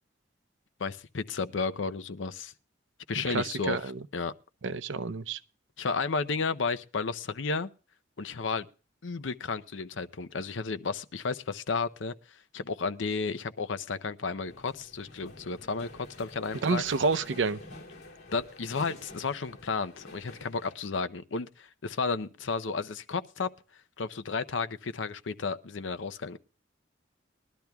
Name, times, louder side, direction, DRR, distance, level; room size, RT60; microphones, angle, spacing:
voice 1, 0.8-2.5 3.1-4.3 5.8-7.7 8.2-8.7 9.0-12.1 12.5-16.8 18.3-23.5 24.0-26.4, left 4 dB, 85° left, 0.7 m, -32 dB
voice 2, 3.2-4.0 4.6-5.4 16.6-17.6, right 4 dB, 80° right, 0.6 m, -29 dB
sound 1, 14.4-20.8, left 2 dB, 60° left, 3.2 m, -48 dB
21.0 x 12.0 x 2.3 m
head